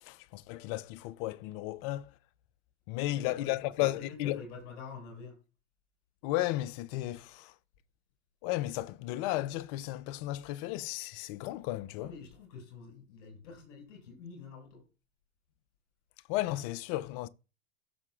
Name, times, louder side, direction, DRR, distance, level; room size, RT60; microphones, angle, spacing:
voice 1, 0.0-2.1 2.9-4.4 6.2-7.5 8.4-12.1 16.3-17.3, left 16 dB, 45° left, 0.6 m, -34 dB
voice 2, 3.0-5.4 12.0-14.8, left 4 dB, 65° left, 6.1 m, -47 dB
16.0 x 6.7 x 2.5 m
hypercardioid pair, 105°, 39 cm